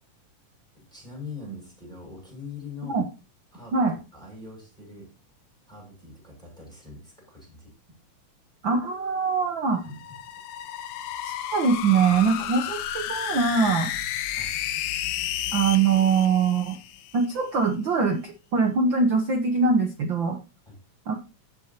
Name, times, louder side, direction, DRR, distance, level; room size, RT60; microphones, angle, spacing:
voice 1, 0.7-3.0 3.5-5.1 5.7-7.7 9.8-10.0 14.3-14.5 20.7-20.8, left 3 dB, ahead, -2 dB, 6.9 m, -42 dB
voice 2, 8.6-9.8 11.2-13.9 15.5-16.8 17.1-20.4 21.1-21.2, right 5 dB, 75° right, 4 dB, 1.1 m, -23 dB
sound 1, 9.8-17.3, left 11 dB, 90° left, 2.3 m, -32 dB
18.0 x 6.4 x 2.9 m, 0.31 s
omnidirectional pair, 3.5 m